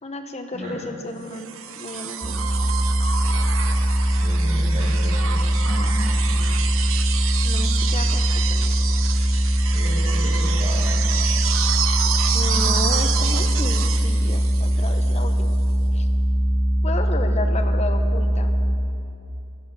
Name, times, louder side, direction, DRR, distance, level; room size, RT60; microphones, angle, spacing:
voice 1, 0.0-2.3 7.4-8.7 12.0-15.5 15.9-16.1 16.8-18.5, left 2 dB, 30° left, 6 dB, 0.9 m, -32 dB
sound 1, 1.3-15.3 16.8-16.9, right 8 dB, 70° right, 0.9 m, -29 dB
sound 2, 2.2-18.8, right 1 dB, 15° right, 1.1 m, -21 dB
voice 2, 4.2-6.6 7.1-7.5 9.7-10.8, right 1 dB, 35° right, -5 dB, 2.2 m, -34 dB
14.0 x 11.5 x 6.9 m, 2.8 s
head